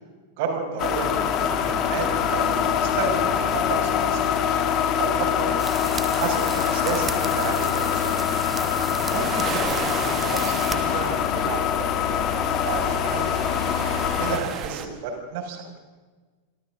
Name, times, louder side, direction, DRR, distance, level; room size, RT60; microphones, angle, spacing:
voice 1, 0.4-4.3 5.0-5.5 6.1-8.2 9.1-13.3 14.1-15.6, right 5 dB, 50° right, 2 dB, 6.0 m, -32 dB
sound 1, 0.8-14.4, left 8 dB, 35° left, 2.2 m, -24 dB
sound 2, 5.6-10.8, right 4 dB, 15° right, 1.7 m, -36 dB
sound 3, 8.3-14.9, right 8 dB, 30° right, 2.0 m, -35 dB
27.5 x 25.5 x 3.8 m, 1.3 s
figure-of-eight pair, 90°, 0 cm